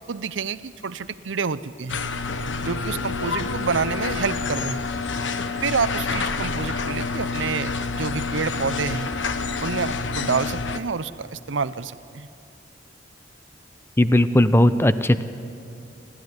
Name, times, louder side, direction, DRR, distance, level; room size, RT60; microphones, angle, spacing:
voice 1, 0.1-2.0 2.6-4.8 5.6-9.1 9.6-12.3, right 5 dB, 85° right, 15 dB, 0.7 m, -28 dB
sound 1, 1.9-10.8, left 4 dB, 85° left, 1.1 m, -28 dB
voice 2, 14.0-15.2, left 1 dB, 15° left, 12 dB, 0.6 m, -17 dB
28.0 x 13.0 x 9.6 m, 2.7 s
head